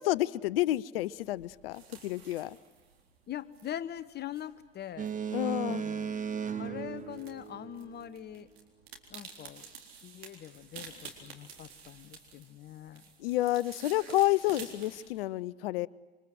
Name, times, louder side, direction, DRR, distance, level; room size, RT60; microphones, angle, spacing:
voice 1, 0.0-2.6 5.3-5.8 13.2-15.9, left 16 dB, 60° left, 21 dB, 0.7 m, -30 dB
sound 1, 0.9-15.2, right 6 dB, 70° right, 4.0 m, -51 dB
voice 2, 3.3-6.2 6.5-8.5 9.1-9.7 10.0-13.0, left 10 dB, 30° left, 15 dB, 0.9 m, -43 dB
Boat Water vehicle, 5.0-8.1, right 7 dB, 25° right, 1.4 m, -36 dB
27.0 x 26.0 x 7.9 m, 1.3 s
figure-of-eight pair, 70°, 32 cm